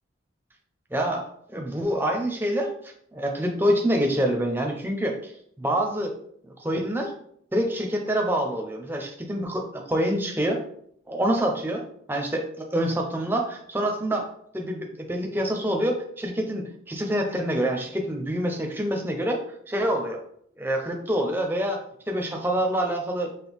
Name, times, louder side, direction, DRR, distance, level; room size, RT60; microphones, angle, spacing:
voice 1, 0.9-1.2 1.5-2.7 3.1-5.3 5.6-6.1 6.6-7.1 7.5-10.6 11.1-11.8 12.1-14.3 14.5-19.4 19.7-20.2 20.6-21.8 22.1-23.3, equal, 10° right, 2 dB, 0.5 m, -26 dB
6.0 x 2.1 x 3.5 m, 0.66 s
head